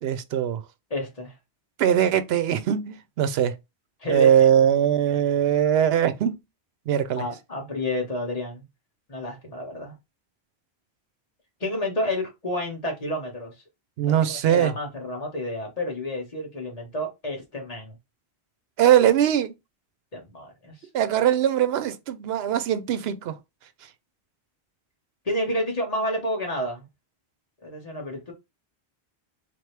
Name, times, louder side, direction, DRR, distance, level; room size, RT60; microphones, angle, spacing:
voice 1, 0.0-0.6 1.8-3.5 4.1-6.4 6.9-7.2 14.0-14.7 18.8-19.5 20.9-23.3, right 10 dB, 75° right, 0.8 m, -21 dB
voice 2, 0.9-1.3 4.0-4.5 7.1-8.6 9.1-9.9 11.6-13.5 14.0-18.0 20.1-20.8 25.2-26.9 27.6-28.3, equal, 35° left, 1.5 m, -30 dB
3.9 x 3.0 x 3.3 m
omnidirectional pair, 1.1 m